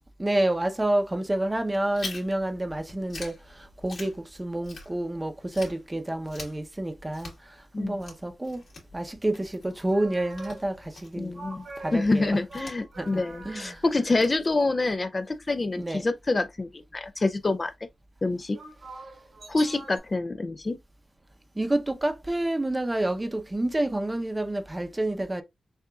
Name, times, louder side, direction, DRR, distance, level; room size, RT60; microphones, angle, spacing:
voice 1, 0.2-3.3 3.8-7.3 7.8-8.6 8.9-11.3 11.8-12.4 13.0-13.8 15.8-16.0 21.6-25.4, right 1 dB, 15° right, 0.6 m, -28 dB
Chewing mastication, 1.9-5.2 5.5-15.0, left 3 dB, 65° left, 2.3 m, -45 dB
sound 1, 9.7-10.9 11.3-13.8 18.5-20.0, right 2 dB, 75° right, 1.8 m, -44 dB
voice 2, 11.2-11.7 11.9-17.7 18.2-18.6 19.5-20.8, left 2 dB, 30° left, 0.3 m, -26 dB
6.7 x 2.3 x 2.3 m
wide cardioid pair, 110°, 0 cm